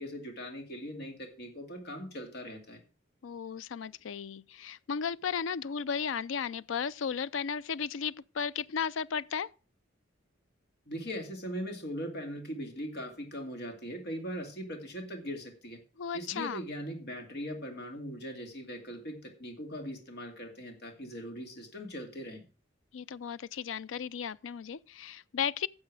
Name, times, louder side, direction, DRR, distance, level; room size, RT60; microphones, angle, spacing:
voice 1, 0.0-2.8 10.9-15.8 16.1-22.4, equal, 60° left, 2.4 m, -40 dB
voice 2, 3.2-9.5 16.0-16.6 22.9-25.7, left 7 dB, 80° left, 0.4 m, -35 dB
11.5 x 7.5 x 4.7 m
head